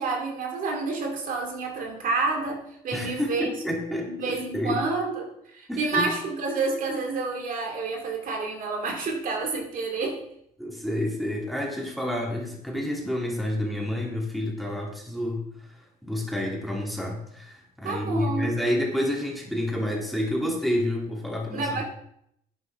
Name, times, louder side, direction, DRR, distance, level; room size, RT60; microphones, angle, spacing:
voice 1, 0.0-3.6 4.1-10.2 17.8-18.6 21.5-21.8, right 3 dB, 55° right, 2 dB, 2.6 m, -29 dB
voice 2, 2.9-4.8 5.7-6.1 10.6-21.8, left 1 dB, ahead, -2 dB, 3.1 m, -29 dB
11.5 x 9.6 x 3.7 m, 0.72 s
cardioid pair, 110°, 17 cm